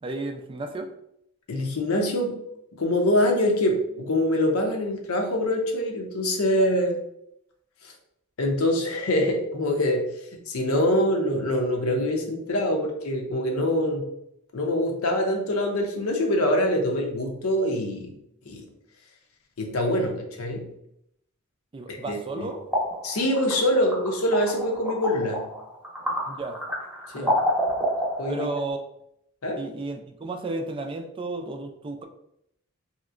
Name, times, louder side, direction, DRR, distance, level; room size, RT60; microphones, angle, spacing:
voice 1, 0.0-0.9 21.7-22.7 26.3-26.6 27.1-27.4 28.3-28.8 29.6-32.0, right 2 dB, 25° right, 5 dB, 0.3 m, -33 dB
voice 2, 1.5-2.4 2.7-7.0 7.8-7.9 8.4-10.1 10.5-14.1 14.5-18.1 18.5-18.6 19.6-20.7 21.9-22.5 23.0-25.4 27.1-27.3 28.2-28.5 29.4-29.6, left 1 dB, 90° left, 2 dB, 0.7 m, -24 dB
sound 1, 22.0-28.7, equal, 5° right, 0.8 m, -29 dB
3.1 x 2.8 x 2.4 m, 0.77 s
head